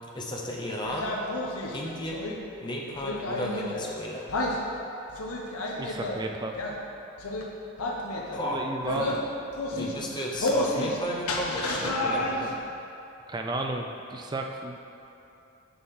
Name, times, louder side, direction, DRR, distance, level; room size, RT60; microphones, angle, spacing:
voice 1, 0.1-1.1 1.7-2.3 2.6-4.3 8.3-9.2 9.7-12.5, left 1 dB, 20° left, -2 dB, 0.7 m, -34 dB
sound 1, 0.8-2.4 3.0-3.9 4.3-4.6 5.1-6.2 6.5-6.8 7.2-7.5 7.8-8.4 8.8-9.2 9.5-9.9 10.4-11.0 11.2-12.6, left 1 dB, 80° left, 0.7 m, -30 dB
voice 2, 5.7-6.6 8.4-9.1 9.7-10.1 10.8-10.9 11.8-12.5 13.3-14.8, right 2 dB, 20° right, 3 dB, 0.3 m, -34 dB
6.8 x 5.4 x 3.6 m, 2.8 s
head